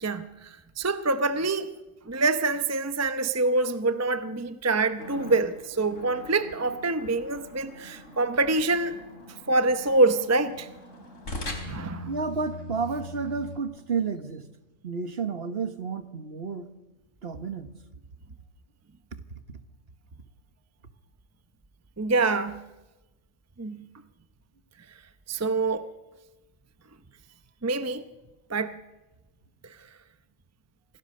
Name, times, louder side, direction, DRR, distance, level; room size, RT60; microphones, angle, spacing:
voice 1, 0.0-1.7 2.1-8.9 9.5-10.7 11.7-12.2 22.0-22.6 23.6-23.8 25.3-25.9 27.6-28.0 28.5-28.8 29.6-29.7, right 3 dB, 15° right, 0.6 m, -26 dB
sound 1, 5.0-13.6, left 1 dB, 70° left, 4.4 m, -42 dB
voice 2, 12.1-14.5 14.8-16.7 17.2-17.7, right 5 dB, 50° right, 1.5 m, -31 dB
26.0 x 18.0 x 6.6 m
omnidirectional pair, 1.3 m